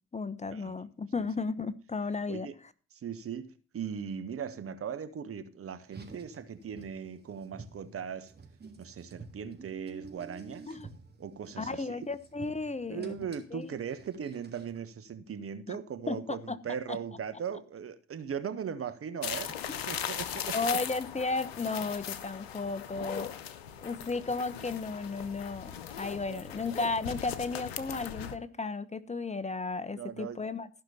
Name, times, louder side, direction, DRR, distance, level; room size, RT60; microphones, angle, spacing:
voice 1, 0.1-2.5 10.7-10.9 11.6-13.2 13.5-13.7 15.7-15.8 16.1-16.6 16.9-17.0 19.7-19.8 20.5-23.3 23.8-30.7, left 3 dB, 20° left, 1.1 m, -34 dB
voice 2, 3.0-8.3 8.8-10.8 11.2-12.1 12.9-19.5 19.9-20.5 26.3-26.5 29.9-30.4, right 7 dB, 50° right, 1.3 m, -39 dB
Car, 5.8-14.8, right 4 dB, 35° right, 3.2 m, -50 dB
sound 1, 19.2-28.4, left 9 dB, 85° left, 0.7 m, -39 dB
15.0 x 6.0 x 6.9 m
hypercardioid pair, 40°, 30 cm